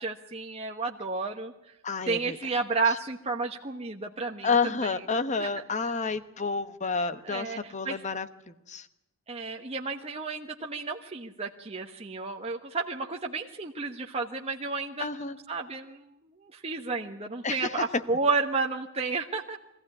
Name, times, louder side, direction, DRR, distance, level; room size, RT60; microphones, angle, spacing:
voice 1, 0.0-1.7 2.1-4.5 4.8-5.0 5.4-5.5 7.2-8.0 9.3-19.6, right 4 dB, 30° right, 1 dB, 1.1 m, -32 dB
voice 2, 1.8-2.4 4.4-8.3 8.7-8.9 15.0-15.4 17.4-17.7, left 4 dB, 35° left, 11 dB, 1.1 m, -29 dB
23.5 x 15.5 x 9.8 m, 0.90 s
head